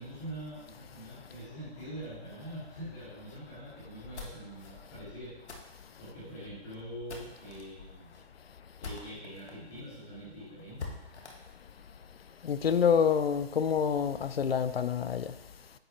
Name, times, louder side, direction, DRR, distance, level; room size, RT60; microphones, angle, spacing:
voice 1, 0.0-8.2 8.8-10.9, right 1 dB, 15° left, 2.2 m, -44 dB
sound 1, 3.8-9.5 9.9-10.0 10.3-10.4 10.8-12.9, left 4 dB, 85° left, 1.7 m, -47 dB
voice 2, 12.4-15.3, left 7 dB, 65° left, 0.6 m, -27 dB
9.9 x 6.3 x 3.1 m
hypercardioid pair, 180°, 33 cm